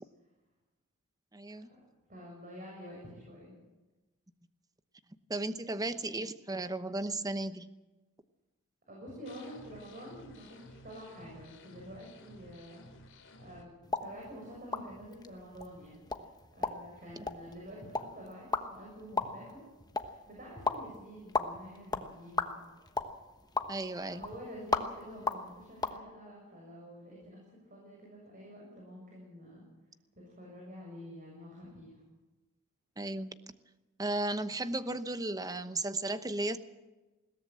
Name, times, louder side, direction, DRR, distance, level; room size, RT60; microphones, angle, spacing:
voice 1, 1.3-1.7 5.3-7.7 17.2-17.3 23.7-24.2 33.0-33.3 34.0-36.6, right 2 dB, 15° right, 11 dB, 1.0 m, -35 dB
voice 2, 2.1-3.6 8.9-16.3 16.5-19.6 20.0-22.6 23.9-29.7 30.2-32.0, equal, 40° right, -2 dB, 6.9 m, -48 dB
sound 1, 9.3-13.6, left 1 dB, 60° left, 3.7 m, -54 dB
sound 2, 13.8-26.0, left 3 dB, 20° left, 1.2 m, -38 dB
21.5 x 17.5 x 7.6 m, 1.1 s
head